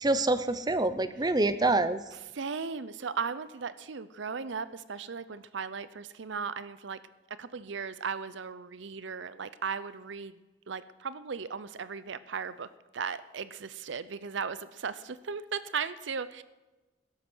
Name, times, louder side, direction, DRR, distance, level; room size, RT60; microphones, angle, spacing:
voice 1, 0.0-2.0, right 2 dB, 20° right, 13 dB, 0.7 m, -26 dB
voice 2, 2.1-7.0 7.4-10.3 10.7-12.7 12.9-16.4, right 5 dB, 65° right, 15 dB, 0.6 m, -37 dB
16.5 x 13.0 x 6.2 m, 1.1 s
head